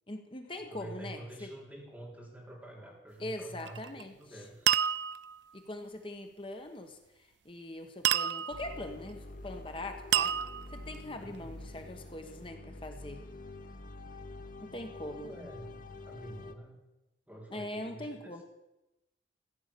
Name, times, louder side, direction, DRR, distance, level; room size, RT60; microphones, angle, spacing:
voice 1, 0.1-1.5 3.2-4.4 5.5-10.4 10.7-13.2 14.6-15.3 17.5-18.4, left 1 dB, 30° left, 5 dB, 1.1 m, -42 dB
voice 2, 0.7-4.7 11.2-11.6 14.7-15.7 16.0-16.8 17.3-18.4, right 1 dB, 5° right, -2 dB, 3.3 m, -48 dB
sound 1, 3.6-4.0 4.7-5.4 8.0-8.8 10.1-11.0, right 10 dB, 75° right, 0.4 m, -29 dB
sound 2, 8.5-16.5, left 2 dB, 45° left, 0.9 m, -47 dB
15.0 x 8.8 x 6.8 m, 0.95 s
head